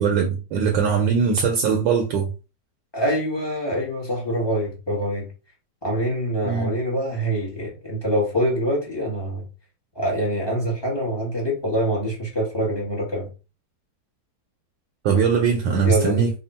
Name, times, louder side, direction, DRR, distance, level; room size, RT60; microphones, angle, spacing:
voice 1, 0.0-2.3 6.4-6.7 15.0-16.3, right 6 dB, 70° right, 1.2 m, -21 dB
voice 2, 2.9-5.3 5.8-9.5 9.9-13.3 15.8-16.3, equal, 20° left, 0.8 m, -25 dB
3.4 x 2.3 x 4.1 m
omnidirectional pair, 2.2 m